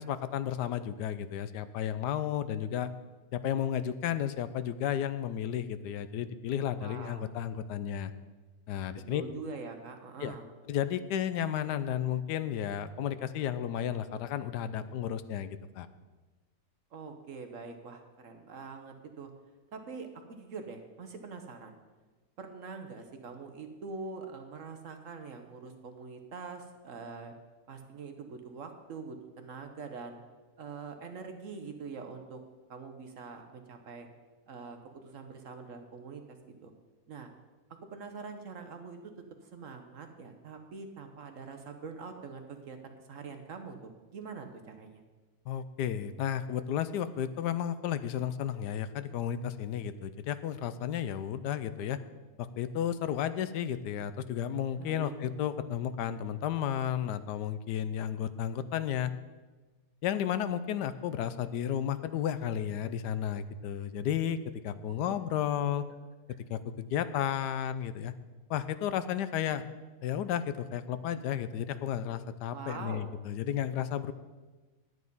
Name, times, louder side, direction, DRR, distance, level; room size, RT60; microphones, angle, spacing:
voice 1, 0.0-2.9 3.3-8.1 8.7-9.2 10.2-10.3 10.7-15.9 45.5-52.0 52.4-59.1 60.0-64.4 64.6-65.8 66.5-68.1 68.5-69.6 70.0-74.1, left 9 dB, 75° left, 13 dB, 1.1 m, -33 dB
voice 2, 6.8-7.3 9.1-10.5 16.9-19.3 19.7-21.8 22.4-27.3 27.7-30.2 30.6-32.4 32.7-34.1 34.5-34.8 35.0-36.7 37.1-37.3 37.9-39.1 39.4-45.0 54.8-55.1 64.9-65.0 72.5-73.1, right 4 dB, 55° right, 6 dB, 1.1 m, -44 dB
9.8 x 9.4 x 5.4 m, 1.3 s
omnidirectional pair, 1.9 m